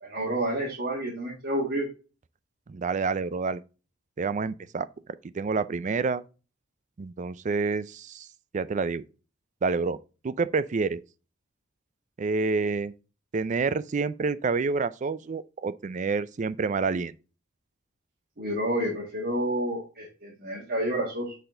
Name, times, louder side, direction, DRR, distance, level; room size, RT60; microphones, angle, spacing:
voice 1, 0.0-1.9 18.4-21.4, right 1 dB, 50° right, 1.7 m, -29 dB
voice 2, 2.7-3.6 4.2-4.9 5.2-6.2 7.0-8.3 8.5-9.0 9.6-10.0 10.2-11.0 12.2-12.9 13.3-17.1, right 4 dB, 35° right, 0.4 m, -28 dB
7.9 x 4.2 x 3.7 m
head